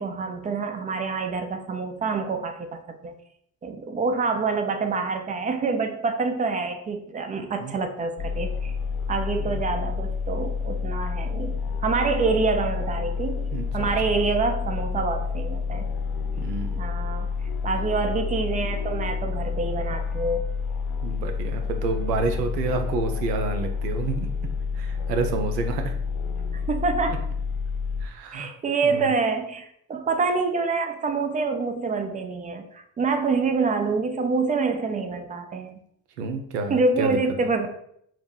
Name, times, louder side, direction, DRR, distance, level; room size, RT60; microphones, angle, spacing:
voice 1, 0.0-3.1 3.6-8.7 9.1-15.9 16.8-17.3 17.6-20.5 26.7-27.1 28.3-35.8 36.7-37.7, right 4 dB, 20° right, 6 dB, 0.3 m, -26 dB
sound 1, 8.2-28.1, left 5 dB, 50° left, 0.7 m, -29 dB
voice 2, 13.5-13.9 16.4-16.8 21.0-24.3 24.7-25.9 27.1-27.2 28.0-28.5 28.8-29.1 36.2-37.2, right 3 dB, 75° right, 6 dB, 0.6 m, -29 dB
4.5 x 2.0 x 4.4 m, 0.72 s
figure-of-eight pair, 40°, 49 cm